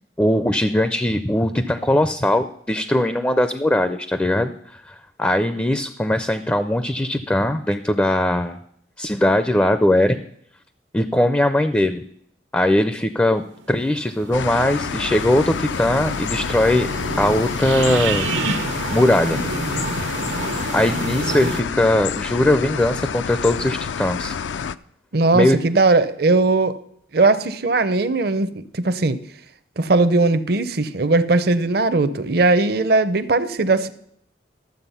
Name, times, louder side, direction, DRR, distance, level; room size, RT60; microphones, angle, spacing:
voice 1, 0.2-8.6 9.0-10.2 10.9-12.0 12.5-16.9 17.2-18.3 18.9-19.4 20.4-24.3 25.3-25.6, left 1 dB, 10° left, 10 dB, 0.4 m, -20 dB
sound 1, 13.7-21.6, right 3 dB, 85° right, 1.0 m, -29 dB
sound 2, 14.3-24.8, left 7 dB, 75° left, 0.4 m, -28 dB
voice 2, 25.1-26.7 27.1-29.2 29.8-33.9, right 3 dB, 55° right, 13 dB, 0.7 m, -18 dB
13.0 x 7.6 x 5.6 m, 0.70 s
head